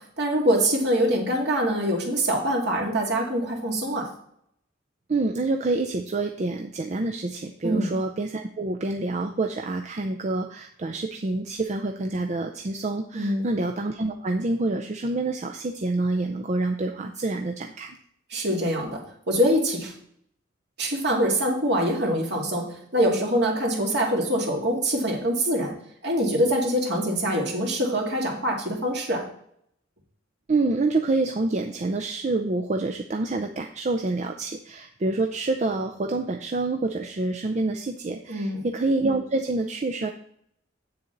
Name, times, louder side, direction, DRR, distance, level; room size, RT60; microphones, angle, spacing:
voice 1, 0.2-4.1 7.6-7.9 13.1-13.5 18.3-19.0 19.3-19.9 20.8-25.7 26.0-29.2 38.3-38.7, equal, 60° right, -1 dB, 2.3 m, -24 dB
voice 2, 5.1-18.0 30.5-40.1, right 2 dB, 40° right, 4 dB, 0.5 m, -27 dB
8.2 x 6.9 x 3.9 m, 0.68 s
head